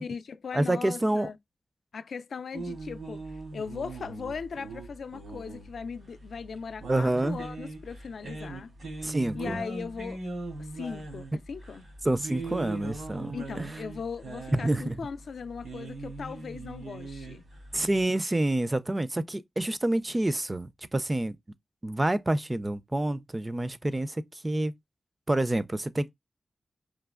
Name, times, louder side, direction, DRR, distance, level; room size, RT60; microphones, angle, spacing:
voice 1, 0.0-1.4 1.9-3.2 3.5-8.7 9.3-10.2 10.6-11.9 13.3-17.4, left 5 dB, 85° left, 0.4 m, -38 dB
voice 2, 0.5-1.3 6.9-7.4 9.0-9.6 12.0-13.7 14.5-15.0 17.7-21.4 21.8-24.7 25.3-26.1, right 1 dB, 20° right, 0.4 m, -28 dB
sound 1, 2.5-18.0, right 2 dB, 85° right, 2.9 m, -40 dB
5.0 x 3.0 x 2.2 m
wide cardioid pair, 110°, 0 cm